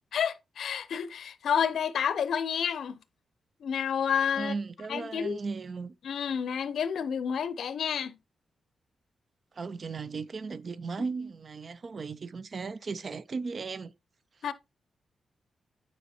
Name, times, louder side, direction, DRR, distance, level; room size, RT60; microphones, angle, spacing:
voice 1, 0.1-3.0 3.6-4.5 4.9-5.4 6.0-8.2 14.4-14.5, left 7 dB, 80° left, 0.7 m, -30 dB
voice 2, 4.4-5.9 9.5-13.9, right 4 dB, 45° right, 0.5 m, -36 dB
9.3 x 5.4 x 2.8 m
wide cardioid pair, 115°, 0 cm